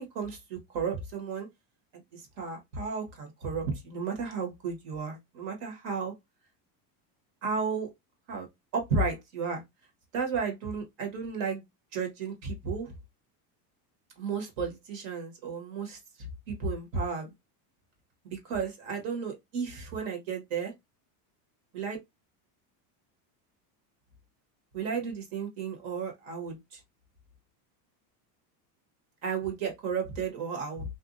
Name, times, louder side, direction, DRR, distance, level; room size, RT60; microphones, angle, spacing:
voice 1, 0.0-1.5 1.9-6.1 7.4-7.9 8.3-8.5 8.7-9.6 10.1-11.6 11.9-12.9 14.2-17.3 18.2-20.7 21.7-22.0 24.7-26.8 29.2-31.0, right 5 dB, 55° right, 1.2 m, -33 dB
2.6 x 2.2 x 2.5 m
cardioid pair, 170°, 45 cm